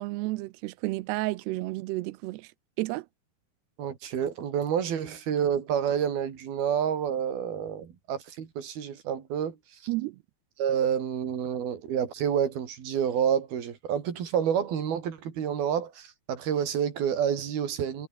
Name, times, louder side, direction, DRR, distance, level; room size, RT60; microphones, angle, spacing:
voice 1, 0.0-2.5 2.8-3.1 9.9-10.2, right 20 dB, 85° right, 2.8 m, -31 dB
voice 2, 3.8-9.6 10.6-18.1, right 8 dB, 65° right, 4.8 m, -28 dB
omnidirectional pair, 4.7 m